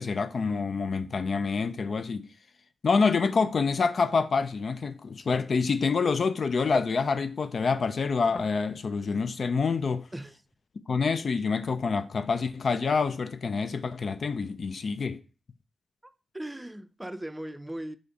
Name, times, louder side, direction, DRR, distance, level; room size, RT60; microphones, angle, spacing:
voice 1, 0.0-2.3 2.8-10.1 10.9-15.2, left 5 dB, 65° left, 0.4 m, -27 dB
voice 2, 16.0-18.0, right 1 dB, 15° right, 0.4 m, -39 dB
5.0 x 2.5 x 3.9 m
cardioid pair, 50°, 0 cm